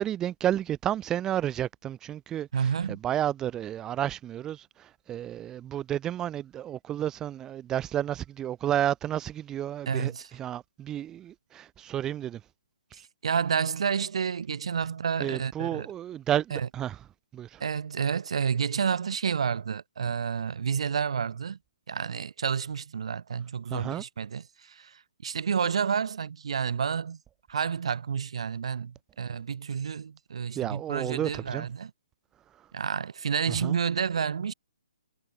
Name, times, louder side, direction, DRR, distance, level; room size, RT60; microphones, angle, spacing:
voice 1, 0.0-2.5 2.9-4.6 5.1-10.1 10.4-12.4 15.2-16.9 17.3-17.5 23.7-24.0 30.6-31.6 33.6-33.7, right 11 dB, 15° right, 1.5 m, -31 dB
voice 2, 2.5-3.0 9.9-10.3 12.9-15.9 16.5-16.7 17.6-21.6 21.9-27.2 27.5-31.9 32.7-34.5, right 6 dB, 60° right, 1.4 m, -30 dB
figure-of-eight pair, 140°, 3 cm